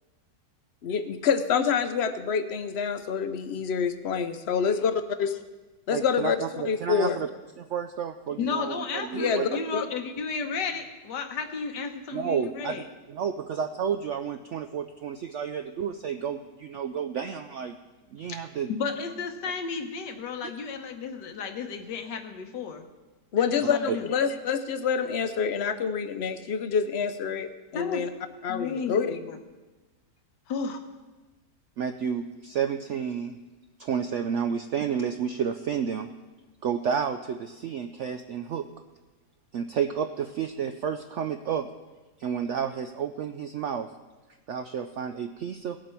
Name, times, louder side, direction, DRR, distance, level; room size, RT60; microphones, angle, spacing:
voice 1, 0.8-5.3 5.9-6.4 6.6-7.2 9.1-9.8 23.3-28.1 28.4-29.1, left 6 dB, 60° left, 10 dB, 0.6 m, -27 dB
voice 2, 5.9-7.3 7.6-9.6 12.1-17.8 18.1-18.7 23.9-24.0 31.8-33.4 33.8-36.1 36.6-38.7 39.5-41.7 42.2-43.9 44.5-45.8, right 7 dB, 80° right, 8 dB, 0.6 m, -31 dB
voice 3, 8.4-12.8 18.2-18.4 18.7-22.8 23.4-24.1 27.7-28.1 28.5-29.4 30.5-30.8, left 5 dB, 85° left, 6 dB, 1.7 m, -33 dB
18.0 x 7.6 x 4.4 m, 1.2 s
omnidirectional pair, 1.8 m